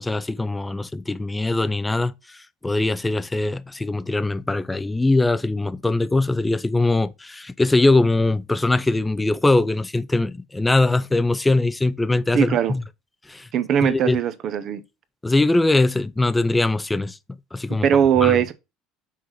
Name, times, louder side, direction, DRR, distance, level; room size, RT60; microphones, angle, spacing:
voice 1, 0.0-12.8 13.3-13.5 13.8-14.2 15.2-17.2 17.5-17.8 18.2-18.4, left 2 dB, 10° left, 0.5 m, -21 dB
voice 2, 12.3-12.7 13.5-14.8 17.8-18.5, right 9 dB, 50° right, 0.9 m, -20 dB
6.0 x 4.1 x 4.8 m
supercardioid pair, 115°, 0 cm